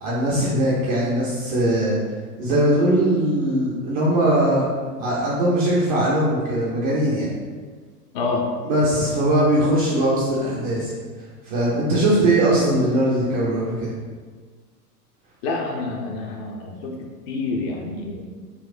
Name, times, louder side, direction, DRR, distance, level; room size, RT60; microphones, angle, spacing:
voice 1, 0.0-2.0 2.4-4.7 5.0-7.3 8.6-10.9 11.4-13.9, right 1 dB, 25° right, -6 dB, 0.3 m, -20 dB
voice 2, 8.1-8.5 15.4-18.2, left 3 dB, 40° left, 1 dB, 0.5 m, -27 dB
4.0 x 2.0 x 2.5 m, 1.5 s
hypercardioid pair, 100°, 48 cm